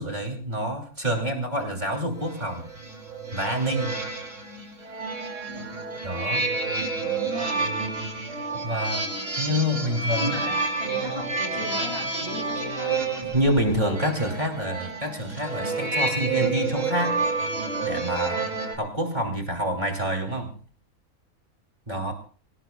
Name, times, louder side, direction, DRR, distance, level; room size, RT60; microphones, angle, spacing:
voice 1, 0.0-2.7 3.3-4.0 6.0-6.5 8.5-9.1 9.4-10.5 13.2-17.2 17.8-18.4 18.7-20.5 21.9-22.1, equal, 30° right, 1 dB, 3.1 m, -27 dB
sound 1, 2.2-18.7, right 3 dB, 55° right, 3.2 m, -29 dB
voice 2, 7.0-7.8 10.2-13.0, equal, 40° left, 2 dB, 3.1 m, -36 dB
24.5 x 17.5 x 2.3 m, 0.41 s
omnidirectional pair, 1.5 m